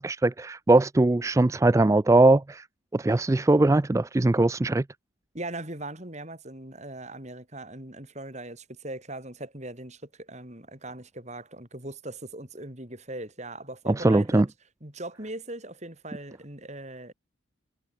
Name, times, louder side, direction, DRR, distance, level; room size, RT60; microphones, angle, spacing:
voice 1, 0.0-2.6 2.9-4.8 13.9-14.5, right 2 dB, 15° right, 0.3 m, -21 dB
voice 2, 5.3-14.5 14.8-17.1, right 1 dB, 35° right, 5.7 m, -39 dB
head